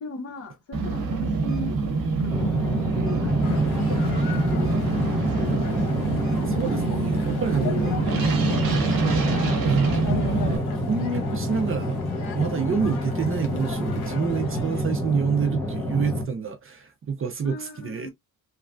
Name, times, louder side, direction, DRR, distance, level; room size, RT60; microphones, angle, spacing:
voice 1, 0.0-1.8 2.2-4.2 4.5-6.1 7.5-8.9 17.4-18.1, left 3 dB, 40° left, 0.8 m, -38 dB
sound 1, 0.7-10.6, right 3 dB, 65° right, 1.0 m, -25 dB
sound 2, 2.3-16.2, equal, 5° left, 0.6 m, -29 dB
sound 3, 3.4-14.8, left 6 dB, 85° left, 1.0 m, -37 dB
voice 2, 6.5-7.9 9.6-12.0 12.3-18.1, right 6 dB, 35° right, 0.5 m, -28 dB
3.1 x 2.2 x 2.4 m
cardioid pair, 145°, 36 cm